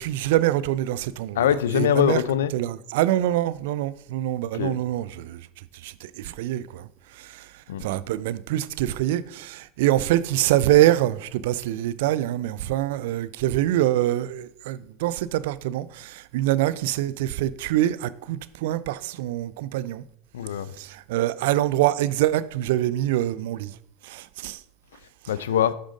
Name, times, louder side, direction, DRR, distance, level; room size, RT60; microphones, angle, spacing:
voice 1, 0.0-1.5 1.7-2.2 2.5-20.0 20.8-23.8 24.0-24.6, right 14 dB, 75° right, 0.3 m, -25 dB
voice 2, 1.4-2.5 4.5-4.8 7.7-7.9 20.3-20.7 25.3-25.7, left 10 dB, 85° left, 0.4 m, -23 dB
6.4 x 5.0 x 3.7 m
hypercardioid pair, 95°, 0 cm